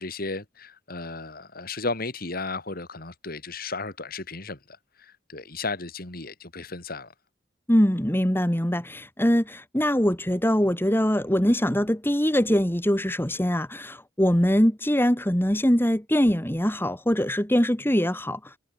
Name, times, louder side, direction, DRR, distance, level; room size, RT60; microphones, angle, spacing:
voice 1, 0.0-4.6 5.3-7.1, left 3 dB, 50° left, 3.8 m, -34 dB
voice 2, 7.7-18.5, equal, 10° left, 2.9 m, -23 dB
head